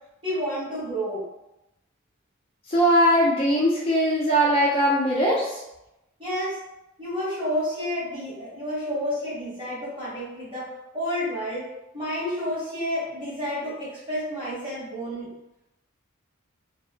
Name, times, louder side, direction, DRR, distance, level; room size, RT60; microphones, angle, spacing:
voice 1, 0.2-1.2 6.2-6.6 7.0-11.7 11.9-15.3, equal, 25° right, -10 dB, 1.2 m, -30 dB
voice 2, 2.7-5.6, equal, 30° left, -5 dB, 0.4 m, -20 dB
2.8 x 2.0 x 2.5 m, 0.90 s
head